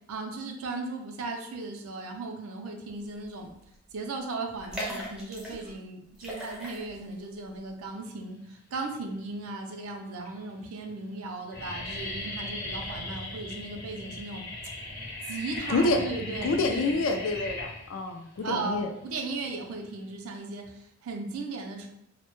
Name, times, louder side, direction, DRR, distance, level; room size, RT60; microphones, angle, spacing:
voice 1, 0.1-3.5 3.9-14.4 15.2-17.0 18.4-21.9, right 3 dB, 75° right, 3 dB, 0.4 m, -36 dB
sound 1, 3.2-3.5 3.7-3.8 4.5-5.7 6.1-7.2 7.6-7.7, equal, 5° right, 0.4 m, -38 dB
sound 2, 8.9-9.5 10.2-10.3 10.5-10.9 11.2-20.1, left 2 dB, 45° left, 0.8 m, -38 dB
voice 2, 15.7-16.0 16.4-18.9, left 2 dB, 60° left, 6 dB, 0.3 m, -27 dB
2.1 x 2.0 x 3.0 m, 0.76 s
head